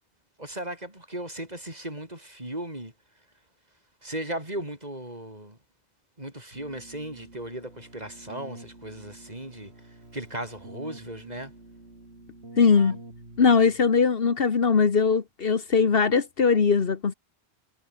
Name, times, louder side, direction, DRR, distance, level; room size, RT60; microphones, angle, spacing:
voice 1, 0.4-2.9 4.0-5.6 6.2-9.7 10.1-11.5, right 1 dB, 40° right, 5.9 m, -36 dB
Keyboard (musical), 6.5-14.1, right 2 dB, 85° right, 5.2 m, -48 dB
voice 2, 12.6-13.0 13.4-17.1, left 5 dB, 65° left, 1.5 m, -20 dB
omnidirectional pair, 1.1 m